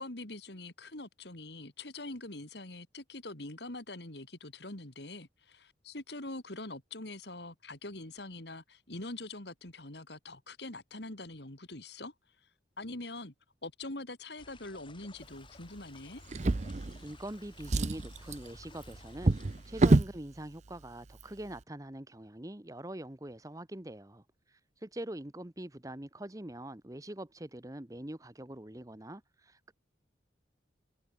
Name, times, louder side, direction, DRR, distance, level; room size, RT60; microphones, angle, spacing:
voice 1, 0.0-12.1 12.8-13.3 13.6-16.2, left 2 dB, 60° left, 3.0 m, -44 dB
sound 1, 14.4-19.7, left 2 dB, 25° left, 7.1 m, -56 dB
Drawer open or close, 16.3-17.3 17.6-20.2 21.1-21.2 21.6-21.7, right 2 dB, 40° right, 0.5 m, -28 dB
voice 2, 17.0-19.3 19.7-29.7, right 1 dB, 20° right, 1.1 m, -44 dB
head